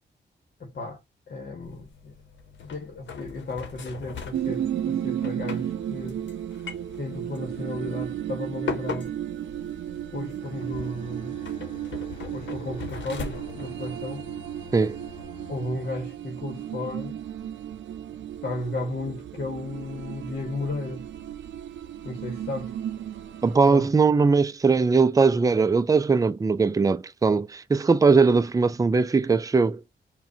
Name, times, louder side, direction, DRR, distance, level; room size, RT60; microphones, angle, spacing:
voice 1, 0.6-1.0 1.3-2.1 2.7-6.2 7.0-9.1 10.1-11.4 12.3-14.3 15.5-17.2 18.4-21.0 22.0-22.7 23.6-23.9, left 2 dB, 60° left, 1.1 m, -34 dB
sound 1, 1.6-15.2, left 5 dB, 75° left, 0.9 m, -41 dB
sound 2, 4.3-23.7, right 10 dB, 85° right, 0.6 m, -34 dB
Bowed string instrument, 10.4-16.3, left 5 dB, 40° left, 2.5 m, -48 dB
voice 2, 23.4-29.8, right 4 dB, 20° right, 0.4 m, -20 dB
4.8 x 2.3 x 2.7 m
cardioid pair, 75°, 19 cm